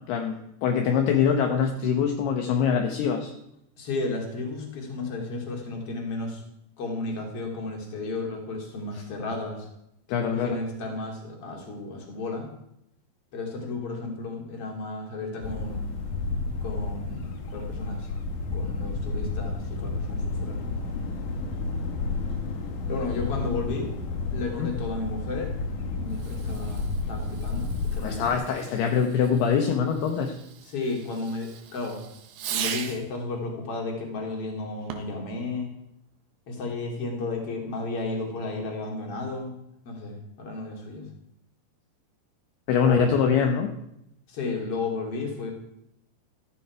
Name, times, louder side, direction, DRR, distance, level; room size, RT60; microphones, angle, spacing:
voice 1, 0.1-3.3 10.1-10.6 24.6-24.7 28.0-30.4 42.7-43.7, left 7 dB, 70° left, 4 dB, 2.9 m, -24 dB
voice 2, 3.8-6.4 6.8-9.7 10.3-12.5 13.3-15.8 16.6-18.1 18.5-20.6 22.9-24.0 24.3-25.5 26.0-28.4 30.7-32.0 32.5-35.7 36.5-39.5 39.9-41.0 42.8-43.1 44.3-45.5, left 3 dB, 35° left, 0 dB, 3.6 m, -33 dB
sound 1, 15.4-28.3, left 3 dB, 55° left, 2.8 m, -31 dB
Fireworks, 26.1-33.2 34.8-35.3, right 8 dB, 75° right, 3.5 m, -39 dB
15.0 x 14.5 x 4.8 m, 0.80 s
omnidirectional pair, 5.2 m